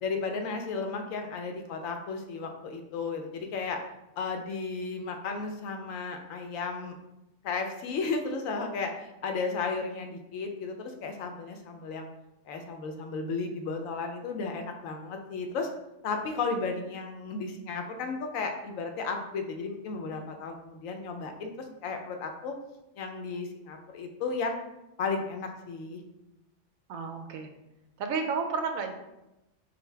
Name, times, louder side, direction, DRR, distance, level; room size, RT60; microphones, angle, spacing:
voice 1, 0.0-3.8 4.2-7.0 7.4-12.1 12.5-15.7 16.0-21.5 21.8-22.5 23.0-24.6 25.0-26.0, left 4 dB, 80° left, 4 dB, 1.0 m, -34 dB
voice 2, 26.9-27.5 28.0-28.9, right 5 dB, 90° right, 5 dB, 1.0 m, -31 dB
5.2 x 2.2 x 3.2 m, 0.92 s
omnidirectional pair, 1.4 m